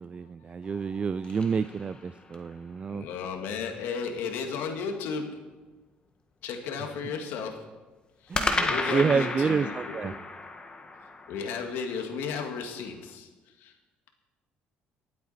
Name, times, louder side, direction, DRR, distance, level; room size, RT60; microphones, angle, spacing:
voice 1, 0.0-3.0 8.3-10.1, right 5 dB, 30° right, 13 dB, 0.3 m, -29 dB
sound 1, 0.6-2.5 8.3-12.6, left 3 dB, 25° left, 1.5 m, -33 dB
voice 2, 2.9-5.7 6.4-7.8 8.2-10.2 11.3-13.3 13.6-13.7, left 5 dB, 80° left, 4 dB, 1.9 m, -34 dB
25.0 x 8.4 x 4.2 m, 1.2 s
cardioid pair, 100°, 4 cm